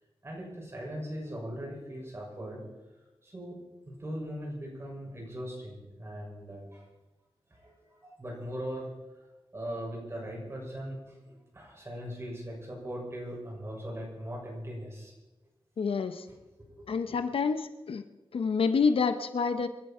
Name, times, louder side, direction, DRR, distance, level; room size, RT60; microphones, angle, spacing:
voice 1, 0.2-2.6 3.2-3.6 3.9-6.8 7.5-8.9 9.5-15.1 16.3-16.9, equal, 25° right, -2 dB, 6.3 m, -40 dB
voice 2, 15.8-16.3 16.9-18.0 18.3-19.7, left 5 dB, 70° left, 9 dB, 0.9 m, -28 dB
26.5 x 11.5 x 4.5 m, 1.1 s
wide cardioid pair, 150°, 10 cm